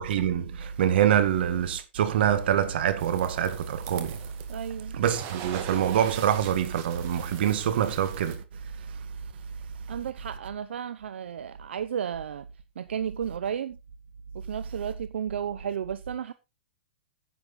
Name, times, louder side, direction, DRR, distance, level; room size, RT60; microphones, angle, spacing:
voice 1, 0.0-4.2 4.9-8.4, right 9 dB, 65° right, 1.9 m, -25 dB
sound 1, 3.0-4.7 5.0-8.4, right 9 dB, 35° right, 2.1 m, -42 dB
voice 2, 4.5-5.0 9.9-12.5 12.8-13.8 14.3-16.3, right 8 dB, 85° right, 0.7 m, -33 dB
10.0 x 7.9 x 4.1 m
hypercardioid pair, 145°, 6 cm